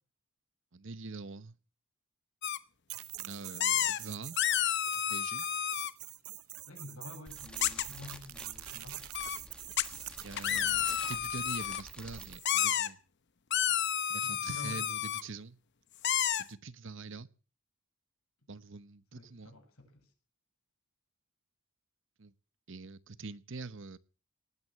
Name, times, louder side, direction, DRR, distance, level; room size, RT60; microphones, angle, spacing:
voice 1, 0.7-1.6 3.2-4.4 5.1-5.4 10.2-13.0 14.1-15.6 16.4-17.3 18.5-19.5 22.2-22.3 22.7-24.0, right 4 dB, 60° right, 0.9 m, -44 dB
sound 1, 2.4-2.6 3.6-4.0 4.4-5.9 7.6-7.8 9.1-9.4 9.8-9.9 10.4-11.8 12.4-12.9 13.5-15.2 16.0-16.4, left 10 dB, 55° left, 0.9 m, -30 dB
sound 2, 2.9-12.7, right 15 dB, 85° right, 0.8 m, -45 dB
voice 2, 6.7-9.1 14.2-15.4 19.1-20.1, left 2 dB, 85° left, 7.3 m, -49 dB
Fire, 7.3-12.4, left 1 dB, 5° left, 1.4 m, -51 dB
19.5 x 9.6 x 7.4 m
head